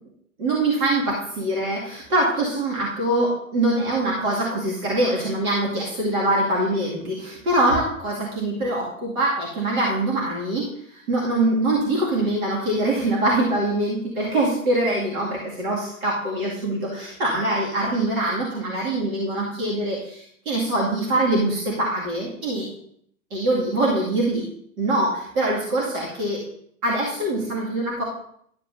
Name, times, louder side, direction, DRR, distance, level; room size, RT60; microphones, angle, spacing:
voice 1, 0.4-10.6 11.1-22.7 23.3-24.4 24.8-26.4 26.8-28.0, right 1 dB, 75° right, -5 dB, 2.4 m, -23 dB
12.0 x 7.6 x 2.7 m, 0.67 s
hypercardioid pair, 100°, 42 cm